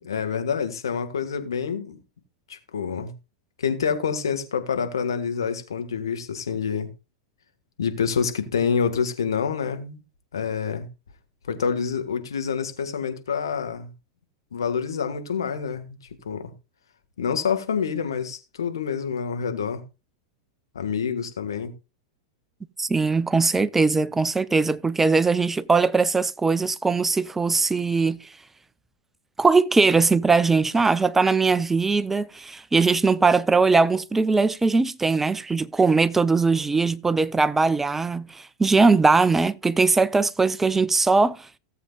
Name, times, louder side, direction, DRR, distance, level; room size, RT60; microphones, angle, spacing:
voice 1, 0.0-2.0 2.5-3.1 3.6-6.9 7.8-10.0 10.3-10.9 11.4-13.9 14.5-16.0 16.2-16.5 17.2-19.8 20.7-21.7, left 6 dB, 75° left, 1.6 m, -27 dB
voice 2, 22.8-28.3 29.4-41.5, right 4 dB, 10° right, 0.5 m, -20 dB
17.0 x 7.7 x 2.4 m
figure-of-eight pair, 95°, 2 cm